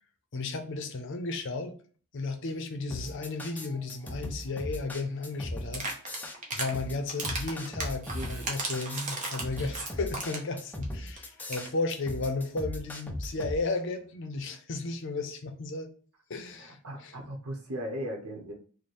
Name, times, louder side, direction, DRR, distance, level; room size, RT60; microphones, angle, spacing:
voice 1, 0.3-1.7 2.1-5.9 6.5-15.9 16.3-17.1, left 3 dB, 55° left, 7 dB, 0.6 m, -34 dB
sound 1, 2.9-13.6, left 1 dB, 10° left, 0.4 m, -38 dB
sound 2, 5.7-6.7 7.1-10.5 10.8-10.9 11.2-11.3 11.4-11.7, right 3 dB, 35° right, 0.8 m, -35 dB
voice 2, 8.1-8.5 16.6-18.5, equal, 80° right, 0 dB, 0.9 m, -38 dB
3.2 x 2.1 x 4.2 m, 0.42 s
head